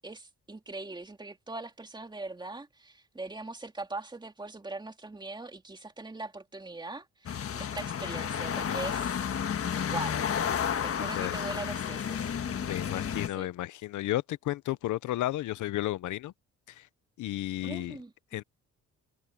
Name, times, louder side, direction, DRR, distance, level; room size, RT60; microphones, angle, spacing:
voice 1, 0.0-9.2 9.9-10.2 10.8-12.7 13.3-13.5 17.6-18.1, right 2 dB, 15° right, 2.5 m, -41 dB
sound 1, 7.3-13.3, left 8 dB, 50° left, 1.5 m, -31 dB
voice 2, 11.0-11.4 12.6-16.3 16.7-16.9 17.2-18.0 18.3-18.4, left 15 dB, 80° left, 0.8 m, -33 dB
cardioid pair, 90°, 30 cm